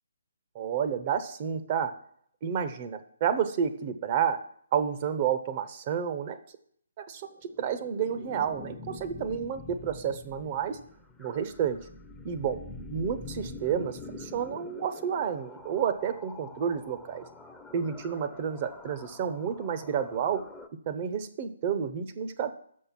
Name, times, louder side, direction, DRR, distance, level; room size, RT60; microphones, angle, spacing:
voice 1, 0.5-1.9 2.4-4.4 4.7-6.4 7.0-7.3 7.6-10.8 11.2-11.8 12.2-12.6 12.9-17.2 17.7-20.4 20.9-22.5, right 8 dB, 35° right, 9 dB, 0.9 m, -30 dB
sound 1, 7.2-20.7, left 3 dB, 5° left, 0.7 m, -46 dB
6.6 x 6.5 x 5.9 m, 0.64 s
figure-of-eight pair, 145°, 0 cm